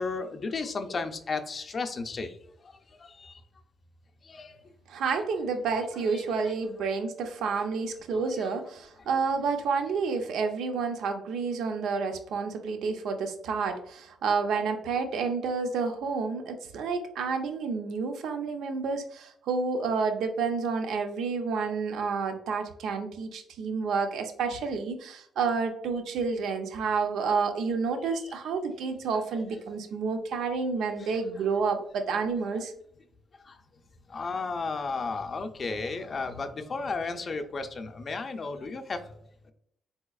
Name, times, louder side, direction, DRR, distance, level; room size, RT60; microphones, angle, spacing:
voice 1, 0.0-2.4 3.0-3.4 4.2-4.6 6.1-6.6 8.1-8.5 28.1-28.2 29.3-29.4 31.0-31.2 33.5-33.6 34.1-39.1, left 4 dB, 40° left, 6 dB, 0.4 m, -34 dB
voice 2, 4.9-32.7, right 5 dB, 80° right, 5 dB, 0.5 m, -29 dB
3.9 x 2.8 x 2.3 m, 0.70 s
cardioid pair, 90°, 0 cm